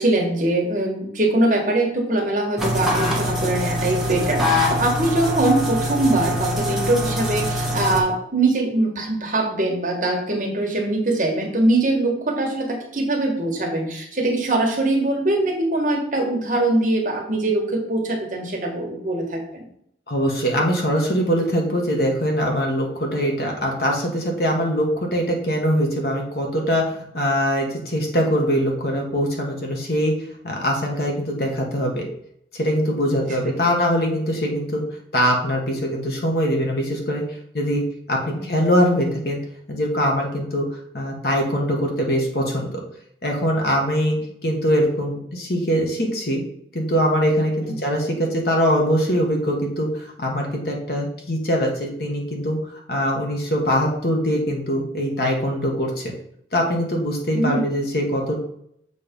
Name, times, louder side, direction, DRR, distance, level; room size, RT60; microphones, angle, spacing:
voice 1, 0.0-19.6 38.2-38.5 57.3-57.6, right 2 dB, 45° right, 0 dB, 1.5 m, -22 dB
sound 1, 2.6-8.0, left 1 dB, ahead, 1.2 m, -23 dB
voice 2, 20.1-30.1 30.4-32.0 32.5-34.8 35.1-37.2 37.5-39.4 39.7-40.7 40.9-42.8 43.2-44.2 44.4-46.4 46.7-52.6 52.9-56.1 56.5-58.4, equal, 55° left, 0 dB, 1.5 m, -22 dB
6.8 x 3.5 x 5.2 m, 0.70 s
head